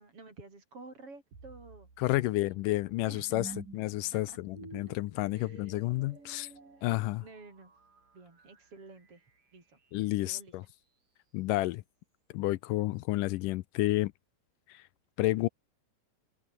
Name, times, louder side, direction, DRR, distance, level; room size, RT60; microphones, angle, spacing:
voice 1, 0.0-1.9 2.3-2.8 3.1-3.6 4.0-4.4 5.3-7.7 8.1-9.2 9.5-9.8 10.2-10.5, right 3 dB, 40° right, 6.2 m, -52 dB
sound 1, 1.3-10.4, right 4 dB, 65° right, 7.5 m, -52 dB
voice 2, 2.0-6.5 6.8-7.2 9.9-10.6 11.3-11.8 12.3-14.1 14.7-14.8 15.2-15.5, left 18 dB, 80° left, 2.1 m, -30 dB
omnidirectional pair, 4.1 m